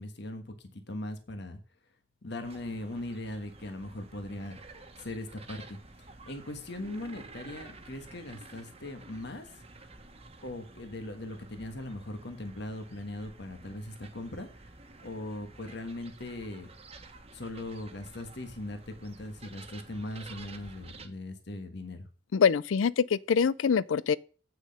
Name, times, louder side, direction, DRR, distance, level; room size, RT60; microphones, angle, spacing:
voice 1, 0.0-1.6 2.2-4.6 5.0-9.5 10.4-14.5 15.0-16.7 17.3-22.1, left 1 dB, 60° left, 1.4 m, -40 dB
sound 1, 2.4-21.1, right 3 dB, 30° right, 1.4 m, -51 dB
voice 2, 22.3-24.2, left 6 dB, 85° left, 0.4 m, -24 dB
8.6 x 6.4 x 5.3 m
head